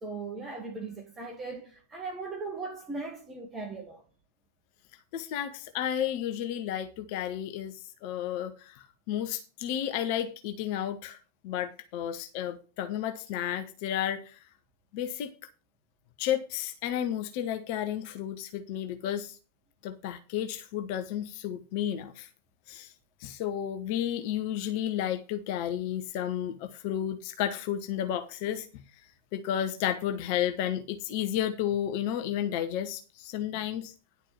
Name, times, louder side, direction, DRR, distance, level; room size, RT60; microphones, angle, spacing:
voice 1, 0.0-4.0, right 3 dB, 20° right, 2.0 m, -38 dB
voice 2, 5.1-11.2 11.4-14.4 14.9-15.3 16.2-19.4 19.8-22.3 22.7-22.9 23.2-28.8 29.3-33.9, left 10 dB, 45° left, 0.9 m, -32 dB
10.5 x 4.6 x 7.4 m
figure-of-eight pair, 90°, 0 cm